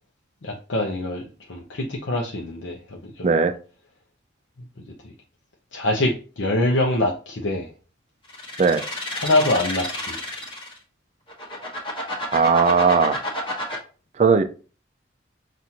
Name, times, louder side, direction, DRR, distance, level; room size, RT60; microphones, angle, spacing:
voice 1, 0.4-3.3 5.0-5.1 5.7-7.7 9.1-10.2, left 1 dB, 80° left, -1 dB, 0.6 m, -24 dB
sound 1, 8.3-10.8 11.3-13.8, left 1 dB, 25° left, 1.0 m, -30 dB
voice 2, 12.3-13.2 14.2-14.4, right 5 dB, 35° right, 9 dB, 0.3 m, -17 dB
5.8 x 2.5 x 2.8 m, 0.37 s
head